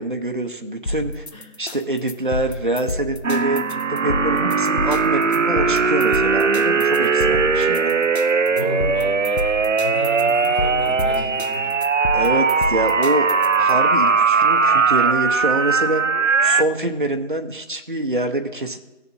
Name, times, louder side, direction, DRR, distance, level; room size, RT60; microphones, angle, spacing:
voice 1, 0.0-1.3 1.6-8.0 12.1-13.3 13.6-16.0 16.4-18.8, right 2 dB, 40° right, 6 dB, 0.9 m, -25 dB
sound 1, 0.9-13.7, left 2 dB, 60° left, 1.1 m, -30 dB
sound 2, 3.2-16.6, right 5 dB, 85° right, 0.7 m, -19 dB
voice 2, 8.3-11.8, left 2 dB, 35° left, -5 dB, 3.8 m, -32 dB
18.0 x 7.0 x 2.7 m, 1.0 s
figure-of-eight pair, 170°, 37 cm